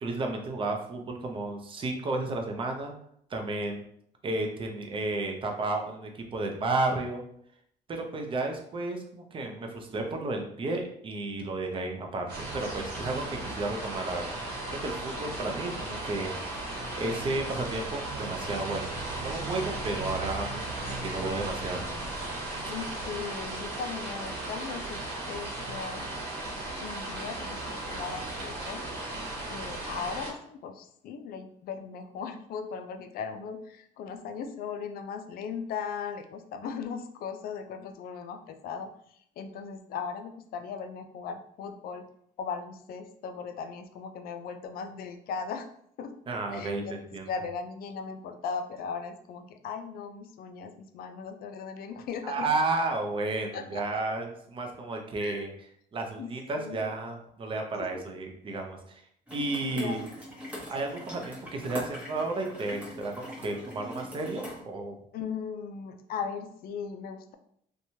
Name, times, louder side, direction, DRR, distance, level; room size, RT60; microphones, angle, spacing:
voice 1, 0.0-2.9 3.3-3.8 4.2-7.2 7.9-14.4 14.7-16.3 17.0-18.9 19.2-21.9 46.3-47.3 52.2-55.5 55.9-59.0 59.3-60.1 60.7-65.0, right 2 dB, 30° right, 2 dB, 0.5 m, -32 dB
sound 1, 12.3-30.3, right 2 dB, 75° right, 1.1 m, -36 dB
voice 2, 22.7-26.1 26.8-28.9 29.5-42.0 42.4-45.7 46.0-46.1 46.5-47.0 47.3-52.5 53.5-53.8 55.2-55.5 56.2-56.3 56.6-56.8 57.9-58.0 59.7-60.0 65.1-67.3, left 6 dB, 60° left, 7 dB, 0.4 m, -38 dB
sound 2, 59.3-64.6, equal, 10° right, 0.9 m, -42 dB
2.9 x 2.2 x 2.7 m, 0.69 s
cardioid pair, 110°, 17 cm